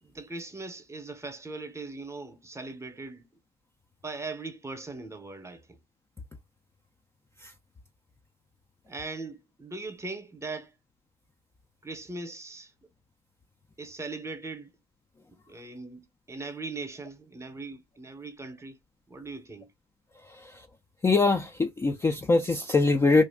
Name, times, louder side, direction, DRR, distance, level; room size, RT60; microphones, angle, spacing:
voice 1, 0.0-3.3 4.0-5.8 8.9-10.7 11.8-12.9 13.8-14.7 15.5-18.8 19.1-19.7, right 3 dB, 15° right, 0.8 m, -40 dB
voice 2, 20.2-20.7 21.0-23.2, left 3 dB, 15° left, 0.3 m, -23 dB
2.5 x 2.2 x 3.4 m
supercardioid pair, 85°, 20 cm